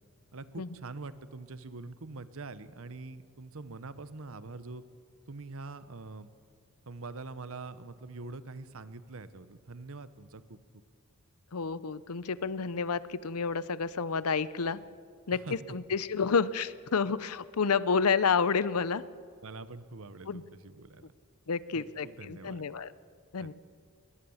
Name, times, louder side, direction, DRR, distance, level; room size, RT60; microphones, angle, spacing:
voice 1, 0.3-4.8 5.3-6.3 6.9-10.6 15.3-15.6 19.4-21.1 21.7-22.7 23.4-23.5, right 3 dB, 65° right, 13 dB, 1.0 m, -44 dB
voice 2, 11.5-14.8 15.3-19.0 20.3-20.4 21.5-22.9 23.3-23.5, left 5 dB, 90° left, 17 dB, 0.7 m, -30 dB
20.5 x 20.0 x 7.2 m, 2.2 s
head